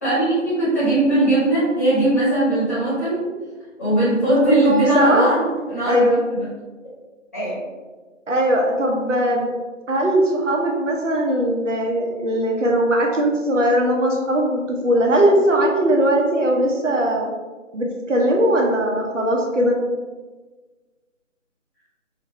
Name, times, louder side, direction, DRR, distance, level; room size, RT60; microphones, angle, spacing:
voice 1, 0.0-3.3 3.8-6.1 6.3-6.4 7.3-7.6, right 1 dB, 15° left, -11 dB, 1.0 m, -19 dB
voice 2, 4.6-5.3 5.8-6.2 8.3-9.5 9.9-17.3 17.7-19.8, right 1 dB, 70° right, 0 dB, 1.1 m, -19 dB
5.1 x 2.5 x 3.3 m, 1.3 s
figure-of-eight pair, 165°, 38 cm